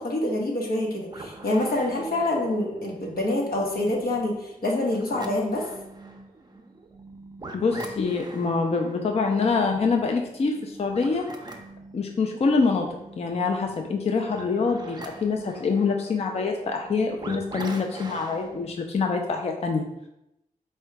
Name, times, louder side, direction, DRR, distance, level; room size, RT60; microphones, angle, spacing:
voice 1, 0.0-5.6, left 1 dB, 80° left, -1 dB, 0.9 m, -26 dB
sound 1, 1.0-18.7, right 2 dB, 30° right, 0.5 m, -43 dB
voice 2, 7.5-11.3 11.9-12.9 13.2-20.1, left 4 dB, 45° left, 3 dB, 0.4 m, -25 dB
3.7 x 2.2 x 4.4 m, 0.86 s
wide cardioid pair, 80°, 15 cm